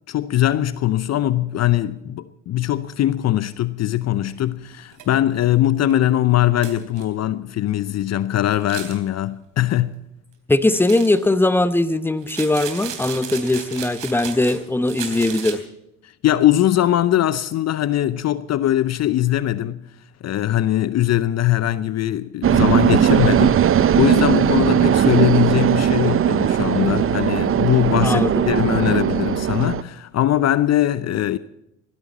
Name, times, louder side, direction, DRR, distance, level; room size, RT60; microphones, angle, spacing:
voice 1, 0.1-9.9 16.0-19.8 20.2-31.4, left 13 dB, 45° left, 0.7 m, -21 dB
sound 1, 4.3-4.4 4.9-5.0 5.4-5.5 5.9-6.0 6.6-7.0 8.5-9.0 10.7-11.3 12.2-14.6 14.9-15.5, right 8 dB, 55° right, 3.5 m, -34 dB
voice 2, 10.5-15.6 28.0-28.3, left 2 dB, 5° left, 1.1 m, -20 dB
sound 2, 22.4-29.8, right 9 dB, 35° right, 0.8 m, -18 dB
19.0 x 15.5 x 4.2 m
hypercardioid pair, 65°, 38 cm